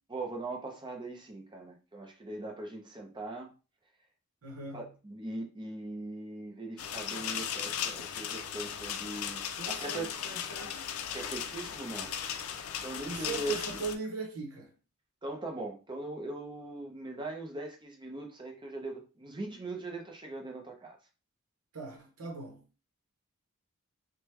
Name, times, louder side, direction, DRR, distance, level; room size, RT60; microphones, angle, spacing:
voice 1, 0.1-3.5 4.7-10.1 11.1-12.1 12.8-13.8 15.2-21.0, right 2 dB, 20° right, 0.6 m, -40 dB
voice 2, 4.4-4.9 9.6-10.9 13.0-14.7 21.7-22.6, right 3 dB, 85° right, 0.8 m, -40 dB
sound 1, 6.8-13.9, left 8 dB, 75° left, 0.4 m, -37 dB
3.2 x 2.2 x 3.1 m
head